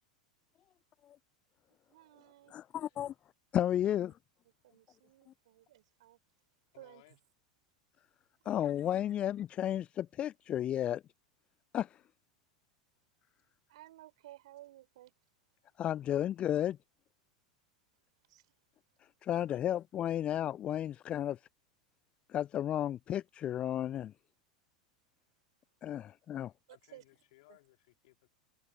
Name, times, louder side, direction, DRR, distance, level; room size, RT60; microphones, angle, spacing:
voice 1, 1.9-2.6 2.9-3.1 3.6-3.8 4.4-6.2 6.8-7.2 8.4-8.9 13.7-15.1 18.3-18.5 26.7-27.0 27.5-27.6, right 15 dB, 65° right, 3.9 m, -56 dB
voice 2, 2.5-3.1 3.5-4.1 8.5-11.0 11.7-12.0 15.8-16.8 19.2-21.4 22.3-24.1 25.8-26.5, left 11 dB, 30° left, 0.4 m, -33 dB
voice 3, 6.7-7.2 19.3-19.8 26.7-28.3, left 21 dB, 60° left, 4.2 m, -62 dB
figure-of-eight pair, 85°, 4 cm